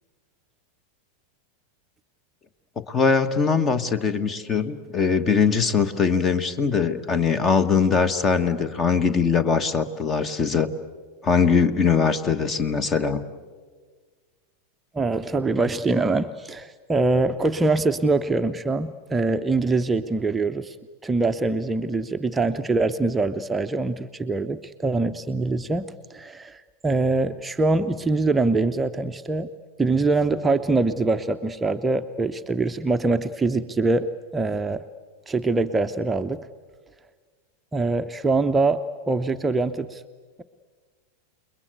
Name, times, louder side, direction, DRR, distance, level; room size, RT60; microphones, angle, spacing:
voice 1, 2.8-10.7 11.2-13.2, left 5 dB, 25° left, 13 dB, 1.3 m, -21 dB
voice 2, 14.9-20.8 21.0-29.5 29.8-34.9 35.3-36.5 37.7-40.0, right 3 dB, 10° right, 7 dB, 0.7 m, -24 dB
28.5 x 21.5 x 8.1 m, 1.5 s
figure-of-eight pair, 90°, 0 cm